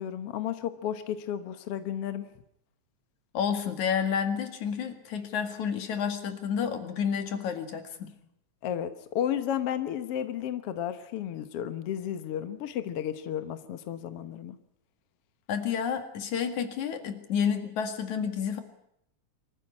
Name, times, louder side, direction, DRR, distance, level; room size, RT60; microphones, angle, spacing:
voice 1, 0.0-2.3 8.6-14.6, left 10 dB, 60° left, 10 dB, 1.9 m, -33 dB
voice 2, 3.3-8.1 15.5-18.6, left 7 dB, 75° left, 7 dB, 3.4 m, -30 dB
24.5 x 14.5 x 9.9 m, 0.75 s
omnidirectional pair, 3.4 m